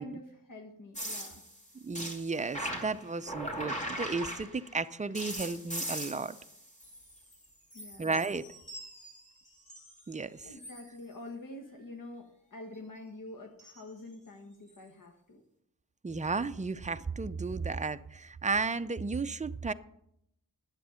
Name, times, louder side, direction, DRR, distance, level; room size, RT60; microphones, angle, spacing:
voice 1, 0.0-1.4 7.7-8.1 10.4-15.4, left 2 dB, 65° left, 3 dB, 1.3 m, -47 dB
sound 1, 0.9-4.8 5.1-7.4 7.7-10.0 10.5-10.9 13.6-13.8 14.7-14.8, equal, 20° left, 2.5 m, -40 dB
voice 2, 1.8-6.4 8.0-8.5 10.1-10.5 16.0-19.7, right 4 dB, 20° right, 12 dB, 0.4 m, -34 dB
11.5 x 8.2 x 5.6 m, 0.76 s
wide cardioid pair, 120°, 35 cm